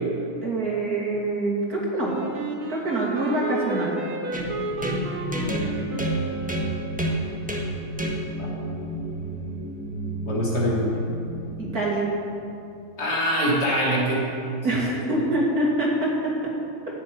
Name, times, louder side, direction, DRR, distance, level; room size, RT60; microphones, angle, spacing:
voice 1, 0.4-2.2 2.7-3.9 11.6-12.1 14.6-16.1, right 2 dB, 45° right, -3 dB, 2.6 m, -25 dB
Wind instrument woodwind instrument, 2.0-7.1, right 2 dB, 65° right, 2.6 m, -32 dB
sound 1, 4.3-12.1, right 1 dB, 5° right, 1.1 m, -30 dB
voice 2, 10.2-11.0 13.0-14.2, equal, 45° left, -5 dB, 3.4 m, -23 dB
14.5 x 6.9 x 9.2 m, 2.6 s
omnidirectional pair, 2.4 m